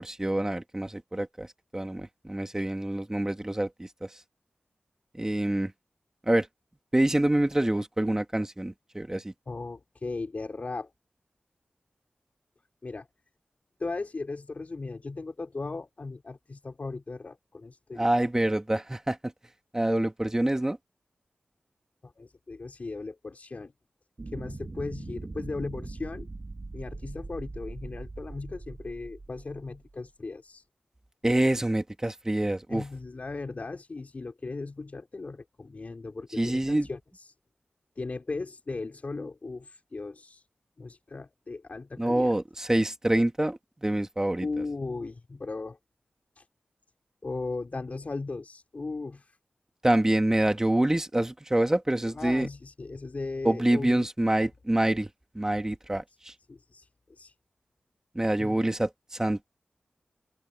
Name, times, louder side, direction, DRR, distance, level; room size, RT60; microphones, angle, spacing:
voice 1, 0.0-1.5 1.7-4.1 5.2-5.7 6.3-6.5 6.9-9.3 18.0-19.2 19.7-20.8 31.2-32.8 36.4-36.9 42.0-44.5 49.8-52.5 53.4-55.1 55.3-56.3 58.2-59.6, right 1 dB, 15° right, 1.8 m, -26 dB
voice 2, 9.5-10.9 12.8-13.1 13.8-18.1 22.0-23.7 24.3-26.3 26.7-30.7 32.7-37.3 38.0-40.5 40.8-42.4 44.4-45.8 46.4-46.5 47.2-49.4 52.0-54.1 56.5-57.3 58.4-58.6, left 3 dB, 50° left, 5.3 m, -37 dB
sound 1, 24.2-29.9, right 3 dB, 45° right, 3.0 m, -41 dB
open air
wide cardioid pair, 80°, 3 cm